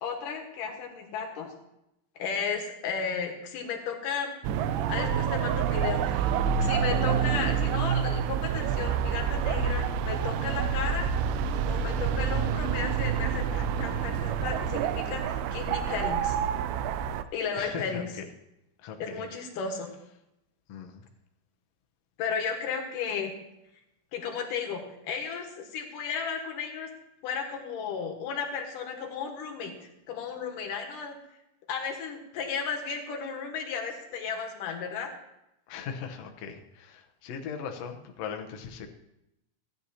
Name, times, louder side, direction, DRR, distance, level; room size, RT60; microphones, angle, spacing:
voice 1, 0.0-1.5 2.2-4.4 4.9-6.3 6.6-11.1 11.6-16.4 17.3-18.1 19.0-19.9 22.2-23.3 24.1-26.9 27.2-29.7 30.1-31.2 31.7-35.1, left 6 dB, 70° left, 3 dB, 2.8 m, -34 dB
sound 1, 4.4-17.2, right 8 dB, 85° right, 2.4 m, -28 dB
voice 2, 17.6-18.3 18.8-19.2 20.7-21.0 35.7-38.9, left 6 dB, 85° left, 4 dB, 1.4 m, -39 dB
15.5 x 10.0 x 2.8 m, 0.86 s
omnidirectional pair, 4.2 m